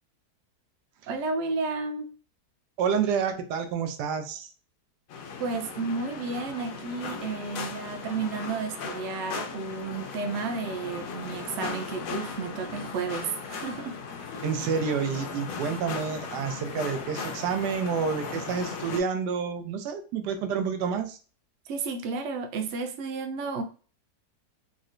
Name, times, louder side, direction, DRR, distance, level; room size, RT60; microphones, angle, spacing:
voice 1, 1.1-2.1 5.4-14.0 21.6-23.6, right 4 dB, 65° right, 6 dB, 0.7 m, -32 dB
voice 2, 2.8-4.5 14.4-21.2, right 6 dB, 90° right, 7 dB, 1.2 m, -29 dB
sound 1, 5.1-19.0, left 5 dB, 70° left, 0.9 m, -37 dB
3.7 x 2.1 x 2.4 m, 0.38 s
omnidirectional pair, 1.7 m